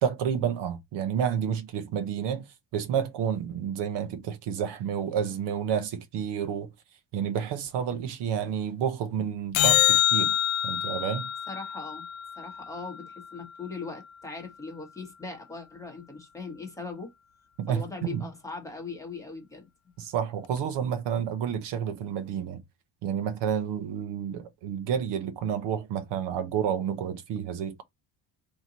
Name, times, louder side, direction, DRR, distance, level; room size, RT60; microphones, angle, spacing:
voice 1, 0.0-2.4 2.7-6.7 7.1-10.4 10.6-11.3 17.6-18.2 20.0-22.6 23.0-27.8, right 8 dB, 65° right, 0.8 m, -30 dB
sound 1, 9.5-14.0 20.6-20.7, left 13 dB, 80° left, 0.6 m, -27 dB
voice 2, 11.5-12.0 12.4-17.1 17.7-19.7, left 4 dB, 5° left, 1.0 m, -39 dB
4.3 x 2.9 x 3.9 m
cardioid pair, 170°, 45 cm